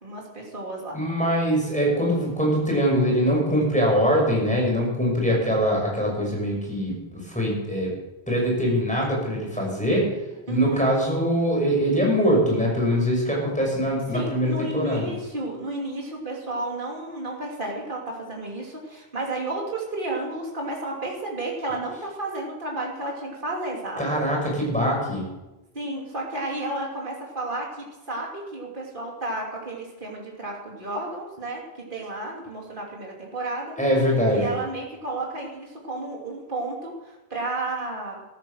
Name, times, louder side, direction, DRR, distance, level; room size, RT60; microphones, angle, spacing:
voice 1, 0.0-1.0 10.5-10.9 14.1-24.1 25.7-31.6 31.9-33.7 34.3-38.2, right 2 dB, 55° right, -2 dB, 3.2 m, -32 dB
voice 2, 0.9-7.9 8.3-10.1 10.5-15.1 24.0-25.2 33.8-34.5, equal, 5° left, -2 dB, 6.0 m, -23 dB
14.0 x 13.5 x 6.5 m, 1.0 s
omnidirectional pair, 1.0 m